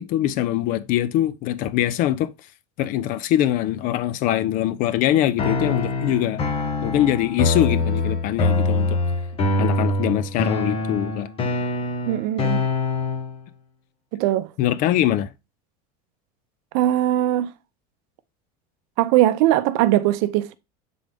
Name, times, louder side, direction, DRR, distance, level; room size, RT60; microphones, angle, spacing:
voice 1, 0.0-2.3 2.8-6.5 6.8-9.0 9.6-11.3 14.6-15.3, left 12 dB, 45° left, 0.5 m, -23 dB
sound 1, 5.4-13.4, left 2 dB, 30° left, 1.1 m, -24 dB
voice 2, 12.1-12.6 14.1-14.5 16.7-17.5 19.0-20.5, right 14 dB, 65° right, 0.6 m, -20 dB
7.3 x 3.9 x 3.4 m
cardioid pair, 155°, 19 cm